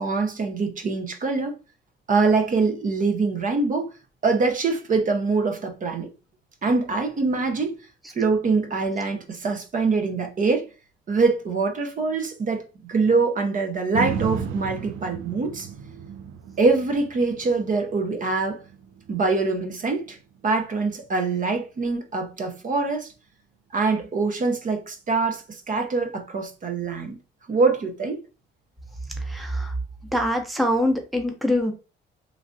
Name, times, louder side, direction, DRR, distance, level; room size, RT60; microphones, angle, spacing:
voice 1, 0.0-1.6 2.1-3.9 4.2-6.1 6.6-7.8 8.1-10.7 11.1-15.7 16.6-18.6 19.1-20.2 20.4-23.1 23.7-27.2 27.5-28.2, right 4 dB, 40° right, 0.6 m, -24 dB
sound 1, 13.9-22.1 22.6-22.7, right 7 dB, 85° right, 0.4 m, -35 dB
voice 2, 29.1-29.7 30.1-31.7, equal, ahead, 0.6 m, -24 dB
3.2 x 2.4 x 2.6 m
cardioid pair, 90°, 20 cm